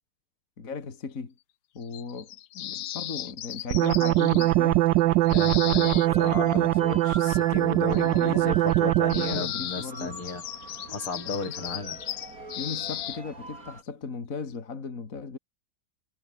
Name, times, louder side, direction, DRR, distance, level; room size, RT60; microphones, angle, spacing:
voice 1, 0.6-1.3 1.7-4.9 7.9-8.6 9.2-10.2 12.6-15.4, left 5 dB, 40° left, 2.7 m, -37 dB
sound 1, 1.8-4.5 5.3-6.3 7.9-8.3 8.7-8.8 9.1-13.2, left 13 dB, 70° left, 1.4 m, -36 dB
sound 2, 3.7-9.5, right 16 dB, 75° right, 1.1 m, -22 dB
sound 3, 4.4-13.8, right 2 dB, 40° right, 6.3 m, -42 dB
voice 2, 5.3-10.4 10.9-12.0, left 4 dB, 85° left, 5.6 m, -34 dB
omnidirectional pair, 2.3 m